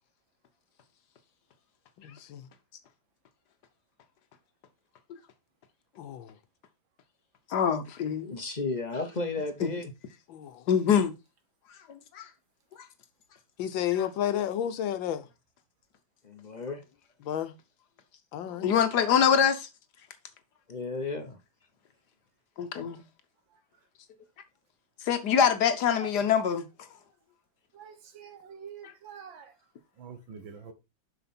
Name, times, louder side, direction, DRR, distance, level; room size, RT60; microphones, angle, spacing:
voice 1, 2.0-2.5 6.0-6.3 10.3-10.6 13.6-15.3 17.2-17.5 18.3-18.7, left 10 dB, 80° left, 1.5 m, -31 dB
voice 2, 7.5-8.3 9.6-9.7 10.7-11.1 11.9-12.3 18.5-19.7 22.6-23.0 25.1-26.6, left 7 dB, 65° left, 1.4 m, -24 dB
voice 3, 8.3-9.9 16.2-16.8 20.7-21.4, left 3 dB, 35° left, 0.8 m, -33 dB
voice 4, 27.8-29.5 30.0-30.7, right 7 dB, 80° right, 2.0 m, -45 dB
7.0 x 5.6 x 4.3 m
omnidirectional pair, 2.1 m